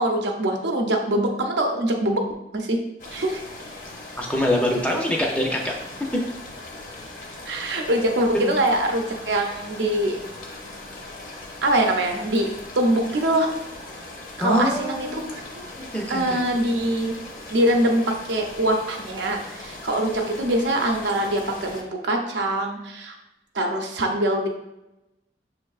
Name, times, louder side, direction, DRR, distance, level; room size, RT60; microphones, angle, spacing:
voice 1, 0.0-2.2 2.5-2.8 3.1-3.4 7.5-10.2 11.6-13.5 14.4-15.3 15.5-15.7 16.1-17.2 17.5-23.1 23.5-24.5, right 1 dB, 85° right, 2 dB, 0.7 m, -23 dB
sound 1, 3.0-21.8, left 2 dB, 45° left, 0.7 m, -40 dB
voice 2, 4.2-5.7 6.1-6.2 8.3-8.5 14.4-15.4 15.9-16.4, equal, 10° left, 0 dB, 0.5 m, -24 dB
6.2 x 3.3 x 2.4 m, 0.94 s
head